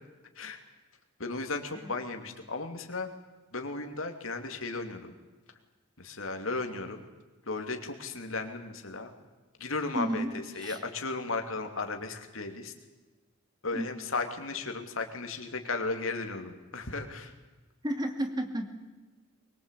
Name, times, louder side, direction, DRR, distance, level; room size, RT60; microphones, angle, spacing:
voice 1, 1.2-3.1 3.5-5.1 6.0-7.0 7.5-9.1 9.6-12.7 13.6-17.3, left 3 dB, 85° left, 5 dB, 2.9 m, -35 dB
voice 2, 9.9-10.8 13.7-13.9 17.8-18.7, right 1 dB, 20° right, 6 dB, 2.4 m, -32 dB
23.0 x 22.5 x 8.4 m, 1.2 s
head